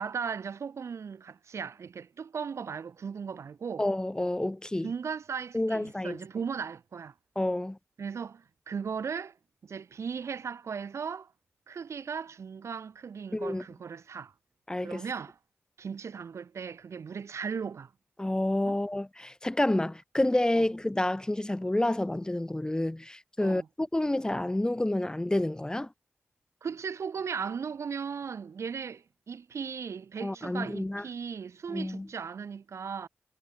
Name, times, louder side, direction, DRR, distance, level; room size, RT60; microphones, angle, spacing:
voice 1, 0.0-3.8 4.8-7.1 8.0-9.3 9.6-11.3 11.7-14.3 14.8-15.4 15.8-17.9 18.7-18.8 20.5-20.6 23.4-23.7 26.6-33.1, right 6 dB, 80° right, 2.5 m, -37 dB
voice 2, 3.8-4.9 5.5-6.2 7.4-7.8 13.3-13.6 14.7-15.0 18.2-25.9 30.2-31.0 31.7-32.1, left 1 dB, 15° left, 1.0 m, -29 dB
cardioid pair, 55°, 5 cm